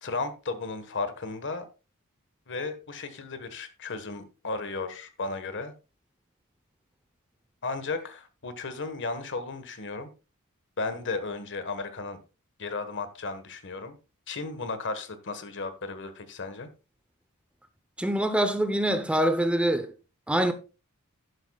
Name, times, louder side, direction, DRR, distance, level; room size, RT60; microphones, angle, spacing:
voice 1, 0.0-1.7 2.5-5.7 7.6-10.1 10.8-12.2 12.6-14.0 14.3-16.7, left 3 dB, 55° left, 1.4 m, -34 dB
voice 2, 18.0-19.9 20.3-20.5, right 1 dB, 5° right, 0.7 m, -24 dB
11.5 x 11.0 x 2.3 m
head